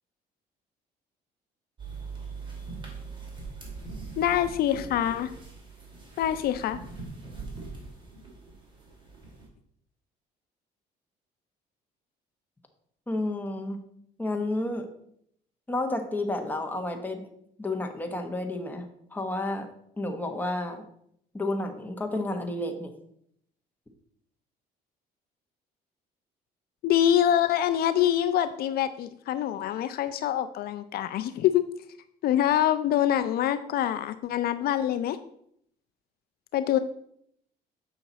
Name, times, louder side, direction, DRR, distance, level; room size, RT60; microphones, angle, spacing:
sound 1, 1.8-9.5, right 4 dB, 30° right, 2.4 m, -41 dB
voice 1, 4.2-5.3 6.2-6.8 26.8-31.6 32.2-35.2 36.5-36.8, left 11 dB, 65° left, 11 dB, 0.4 m, -25 dB
voice 2, 13.1-13.8 14.2-14.9 15.7-17.2 17.6-18.9 19.1-19.7 20.0-20.8 21.3-22.9, left 2 dB, 10° left, 4 dB, 1.1 m, -31 dB
7.3 x 5.8 x 4.0 m, 0.70 s
cardioid pair, 110°, 17 cm